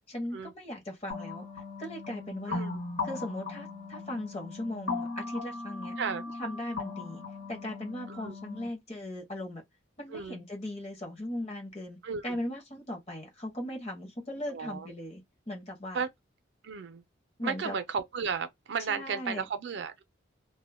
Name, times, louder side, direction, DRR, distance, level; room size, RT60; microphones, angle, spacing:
voice 1, 0.1-1.4 1.8-2.6 3.0-6.0 6.4-7.2 7.5-9.6 10.0-12.0 12.2-16.0 17.4-17.8 18.9-19.5, left 1 dB, 30° left, 0.8 m, -38 dB
sound 1, 1.1-8.7, left 3 dB, 85° left, 1.0 m, -38 dB
voice 2, 2.5-2.8 6.0-6.2 8.1-8.3 10.1-10.4 12.0-12.4 14.5-14.9 15.9-16.1 16.6-17.0 17.4-20.0, right 6 dB, 60° right, 0.4 m, -34 dB
2.2 x 2.0 x 3.2 m
head